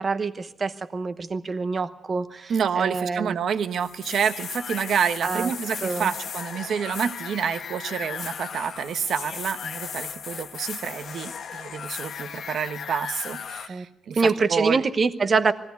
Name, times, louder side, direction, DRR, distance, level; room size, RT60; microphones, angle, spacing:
voice 1, 0.0-3.3 5.2-5.5 5.8-6.1 13.7-13.8 14.1-15.5, right 4 dB, 25° right, 11 dB, 1.0 m, -25 dB
voice 2, 2.5-14.8, right 7 dB, 50° right, 10 dB, 1.0 m, -28 dB
sound 1, 3.8-13.7, left 7 dB, 45° left, 1.4 m, -36 dB
21.0 x 16.5 x 9.4 m, 0.82 s
cardioid pair, 175°, 0 cm